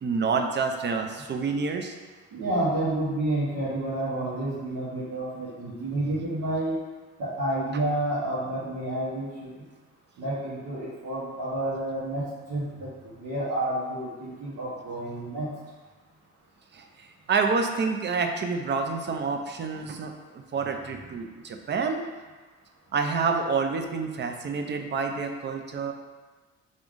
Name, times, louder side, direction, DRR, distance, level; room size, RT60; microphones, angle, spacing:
voice 1, 0.0-1.9 16.7-20.1 20.5-22.0 22.9-25.9, right 4 dB, 35° right, 5 dB, 0.4 m, -28 dB
voice 2, 2.3-6.8 7.2-9.5 10.2-15.5, right 1 dB, 85° right, -11 dB, 1.1 m, -30 dB
3.4 x 2.6 x 3.6 m, 1.3 s
cardioid pair, 90°, 30 cm